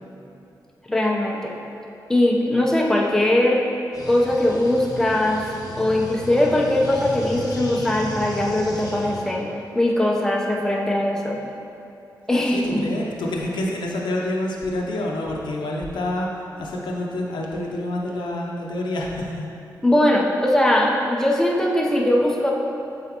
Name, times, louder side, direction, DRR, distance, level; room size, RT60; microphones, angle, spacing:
voice 1, 0.9-1.5 2.1-3.6 4.1-5.4 5.8-11.4 12.3-13.0 19.8-22.5, left 1 dB, 5° left, -2 dB, 0.8 m, -20 dB
sound 1, 3.9-9.3, left 1 dB, 55° left, 0.9 m, -35 dB
voice 2, 12.5-16.3 16.6-19.5, left 1 dB, 85° left, -1 dB, 0.6 m, -27 dB
7.6 x 4.1 x 3.0 m, 2.7 s
cardioid pair, 70°, 8 cm